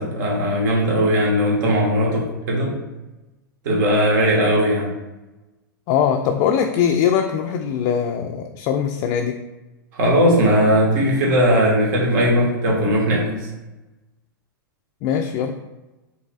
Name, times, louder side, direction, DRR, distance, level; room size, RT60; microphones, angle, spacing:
voice 1, 0.0-2.7 3.6-4.9 9.9-13.3, equal, 55° right, -3 dB, 1.4 m, -18 dB
voice 2, 5.9-9.4 15.0-15.6, left 8 dB, 40° left, 5 dB, 0.4 m, -21 dB
5.3 x 3.2 x 2.3 m, 1.1 s
hypercardioid pair, 100°, 11 cm